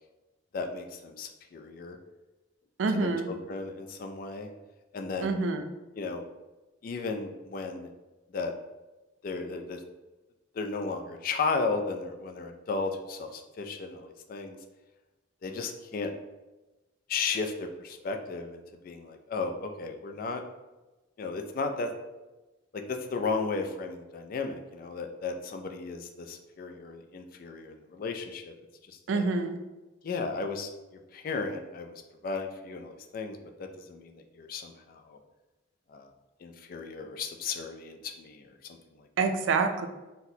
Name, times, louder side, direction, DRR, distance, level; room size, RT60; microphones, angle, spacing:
voice 1, 0.5-2.0 2.9-4.5 4.9-5.4 6.0-6.2 6.8-7.9 8.3-8.5 9.2-9.8 10.5-14.6 15.4-16.1 17.1-20.4 21.2-21.9 22.7-28.5 28.9-29.2 30.0-30.7 31.1-35.2 35.9-36.1 36.4-39.1, left 4 dB, 45° left, 5 dB, 0.3 m, -35 dB
voice 2, 2.8-3.3 5.2-5.7 29.1-29.6 39.2-39.9, right 4 dB, 75° right, 6 dB, 0.3 m, -27 dB
4.0 x 2.1 x 2.7 m, 1.1 s
head